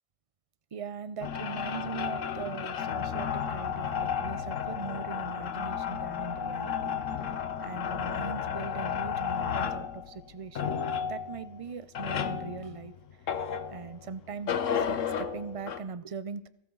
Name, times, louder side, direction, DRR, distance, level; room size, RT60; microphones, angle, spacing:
voice 1, 0.7-7.0 7.2-10.8 11.1-12.9 13.7-16.5, right 5 dB, 60° right, 15 dB, 0.3 m, -40 dB
sound 1, 1.2-14.1 14.5-15.8, left 7 dB, 65° left, 1.3 m, -33 dB
22.0 x 13.5 x 3.9 m, 0.84 s
omnidirectional pair, 1.4 m